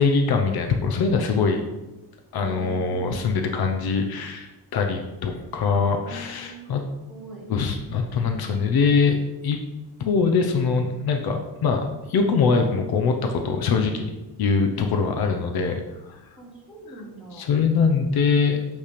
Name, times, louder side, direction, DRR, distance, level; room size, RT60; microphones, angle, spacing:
voice 1, 0.0-1.6 2.3-6.8 7.5-9.2 9.4-9.6 10.0-14.1 14.4-16.2 17.3-18.7, left 5 dB, 65° left, 4 dB, 0.8 m, -23 dB
voice 2, 2.4-3.6 5.6-6.6 7.1-7.4 16.4-17.5, equal, ahead, -6 dB, 2.1 m, -42 dB
8.2 x 3.5 x 5.1 m, 1.0 s
cardioid pair, 160°, 40 cm